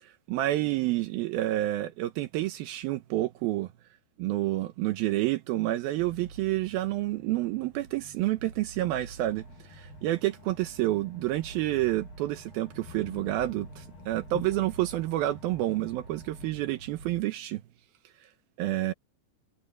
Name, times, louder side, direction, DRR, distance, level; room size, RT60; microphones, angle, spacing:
voice 1, 0.3-3.7 4.2-17.6 18.6-18.9, right 16 dB, 75° right, 2.4 m, -29 dB
sound 1, 6.0-17.2, right 3 dB, 40° right, 7.3 m, -48 dB
sound 2, 9.2-16.5, left 7 dB, 60° left, 3.7 m, -49 dB
omnidirectional pair, 4.7 m